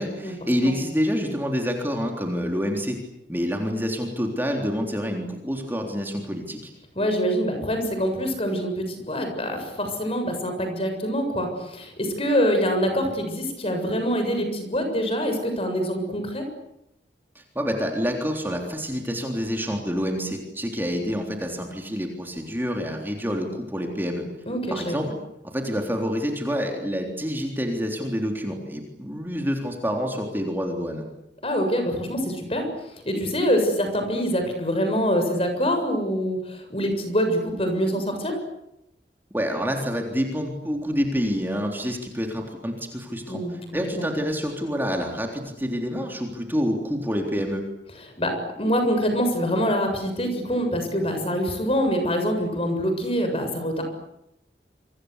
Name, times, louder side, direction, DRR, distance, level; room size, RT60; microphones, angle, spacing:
voice 1, 0.0-3.0 3.3-6.7 17.4-24.3 24.7-25.1 25.5-31.0 39.3-47.6, equal, 10° right, 2 dB, 3.6 m, -27 dB
voice 2, 7.0-16.4 24.5-24.9 31.4-32.7 33.0-38.4 43.3-44.1 48.2-48.3 48.6-53.8, equal, 35° left, 6 dB, 7.3 m, -25 dB
28.5 x 25.5 x 8.3 m, 0.84 s
head